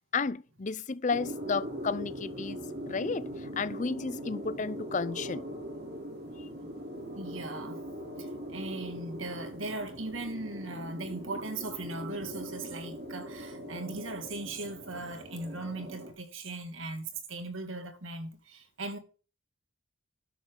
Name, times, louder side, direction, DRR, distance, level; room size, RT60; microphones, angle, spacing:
voice 1, 0.1-2.6 2.9-5.4, left 4 dB, 40° left, 0.5 m, -32 dB
sound 1, 1.1-16.1, equal, 50° right, 3.4 m, -41 dB
voice 2, 7.1-7.8 8.2-19.0, right 2 dB, 85° right, 2.2 m, -38 dB
12.0 x 10.0 x 3.9 m
head